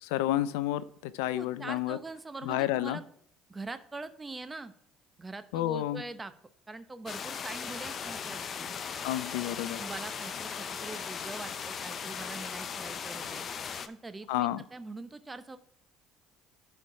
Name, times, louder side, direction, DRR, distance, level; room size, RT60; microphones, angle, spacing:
voice 1, 0.0-2.0 2.4-3.0 5.5-6.0 9.0-9.8 14.3-14.6, left 14 dB, 75° left, 16 dB, 0.4 m, -30 dB
voice 2, 1.3-3.0 3.5-4.7 5.2-6.3 6.7-8.8 9.8-13.5 13.9-15.6, right 3 dB, 20° right, 11 dB, 0.8 m, -43 dB
sound 1, 7.1-13.9, left 6 dB, 45° left, 0.7 m, -38 dB
10.5 x 4.5 x 4.7 m, 0.62 s
hypercardioid pair, 65°, 0 cm